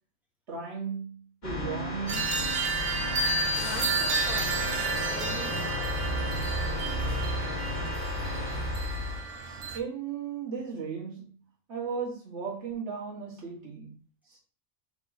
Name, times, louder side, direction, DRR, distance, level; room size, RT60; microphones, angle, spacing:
voice 1, 0.5-2.4 9.7-11.4 11.7-14.0, right 6 dB, 65° right, 1.8 m, -36 dB
sound 1, 1.4-9.2, left 1 dB, 35° left, 1.4 m, -33 dB
sound 2, 2.1-9.8, right 3 dB, 80° right, 1.1 m, -31 dB
sound 3, 3.6-6.4, left 7 dB, 70° left, 0.4 m, -46 dB
voice 2, 3.6-6.1, equal, ahead, 1.0 m, -43 dB
3.9 x 2.9 x 3.9 m
omnidirectional pair, 1.3 m